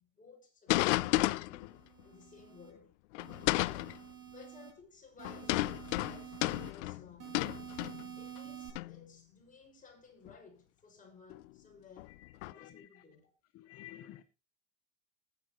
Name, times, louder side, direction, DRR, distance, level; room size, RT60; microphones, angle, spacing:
voice 1, 0.0-3.0 4.3-7.5 8.1-12.2 12.4-13.3, left 5 dB, 20° left, 6.2 m, -57 dB
sound 1, 0.7-1.7 3.2-4.0 5.2-8.4 8.8-9.0 10.3-10.4 11.3-11.4 12.0-12.5, left 19 dB, 80° left, 0.6 m, -32 dB
sound 2, 1.6-2.7 3.2-4.7 5.2-6.7 7.2-8.7, right 11 dB, 45° right, 5.2 m, -49 dB
voice 2, 12.2-12.9 13.5-14.2, left 13 dB, 45° left, 0.9 m, -52 dB
19.5 x 9.3 x 3.0 m
supercardioid pair, 115°, 35 cm